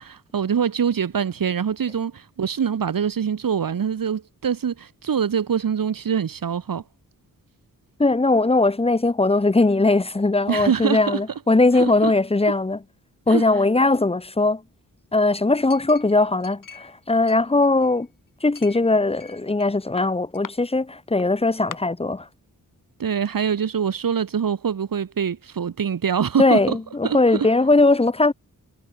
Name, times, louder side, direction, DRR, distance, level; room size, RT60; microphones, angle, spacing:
voice 1, 0.0-6.8 10.5-11.2 11.8-12.1 13.3-13.4 23.0-26.8 27.0-27.5, right 7 dB, 75° right, 1.9 m, -24 dB
voice 2, 8.0-12.8 13.3-14.6 15.1-18.1 18.4-22.3 26.4-28.3, left 2 dB, 15° left, 1.1 m, -19 dB
Chink clink, 15.7-17.0 17.3-18.1 18.6-19.7 20.0-20.5 21.2-21.3 21.7-21.8, left 6 dB, 65° left, 4.7 m, -41 dB
wide cardioid pair, 165°, 34 cm